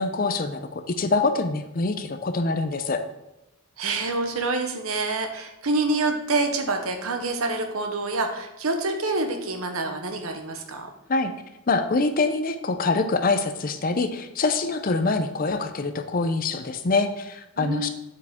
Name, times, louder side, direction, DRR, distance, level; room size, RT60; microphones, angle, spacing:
voice 1, 0.0-3.0 11.1-11.3 11.7-17.9, left 3 dB, 40° left, 8 dB, 0.5 m, -25 dB
voice 2, 3.8-10.9 17.6-17.9, right 2 dB, 75° right, 5 dB, 1.0 m, -27 dB
7.9 x 4.8 x 3.6 m, 0.96 s
head